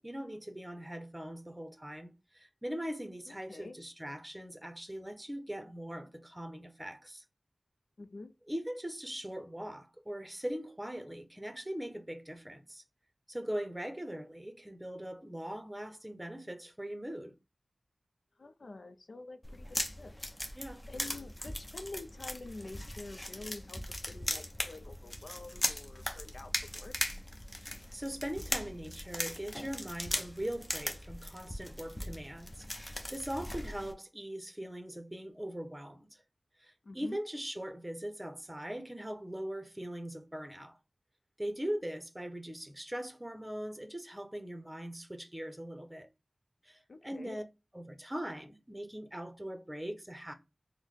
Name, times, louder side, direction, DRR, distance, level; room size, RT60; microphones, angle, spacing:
voice 1, 0.0-7.2 8.5-12.8 13.3-17.4 20.5-20.8 27.5-36.2 36.6-40.8 41.4-46.1 46.6-47.4 47.7-50.3, equal, 15° right, 0.8 m, -41 dB
voice 2, 3.3-3.8 8.0-8.3 18.4-27.0 36.8-37.2 46.9-47.4, left 2 dB, 75° left, 0.4 m, -48 dB
sound 1, 19.4-33.9, left 1 dB, 25° left, 0.7 m, -39 dB
3.8 x 2.1 x 3.1 m
cardioid pair, 45°, 0 cm